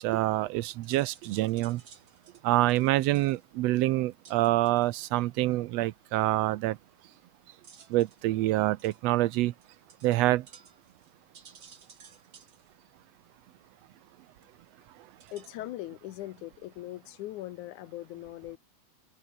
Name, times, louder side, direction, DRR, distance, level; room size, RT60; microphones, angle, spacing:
voice 1, 0.0-1.8 2.4-6.8 7.9-9.5 10.0-10.5, right 16 dB, 75° right, 1.7 m, -26 dB
sound 1, 0.5-15.7, right 6 dB, 45° right, 3.1 m, -59 dB
voice 2, 15.3-18.6, left 15 dB, 90° left, 2.4 m, -40 dB
open air
omnidirectional pair, 3.3 m